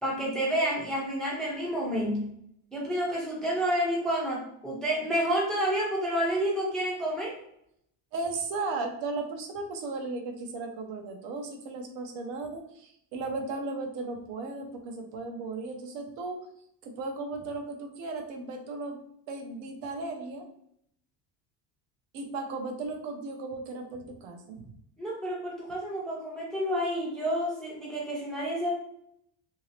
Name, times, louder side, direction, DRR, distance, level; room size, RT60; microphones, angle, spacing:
voice 1, 0.0-2.3 2.7-7.3 25.0-28.7, equal, ahead, -4 dB, 0.4 m, -29 dB
voice 2, 8.1-16.5 16.8-19.0 19.3-20.5 22.1-24.6, right 3 dB, 70° right, 4 dB, 0.8 m, -36 dB
2.8 x 2.7 x 3.2 m, 0.72 s
cardioid pair, 170°, 46 cm